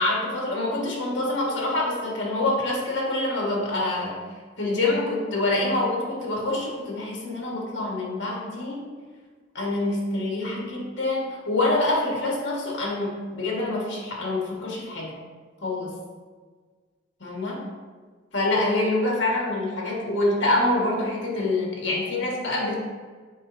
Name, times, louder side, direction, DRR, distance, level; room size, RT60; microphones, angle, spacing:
voice 1, 0.0-4.2 4.6-8.9 9.6-15.2 15.6-15.9 17.2-17.7 18.3-22.7, left 2 dB, 70° left, -3 dB, 1.7 m, -26 dB
7.5 x 5.0 x 2.7 m, 1.5 s
head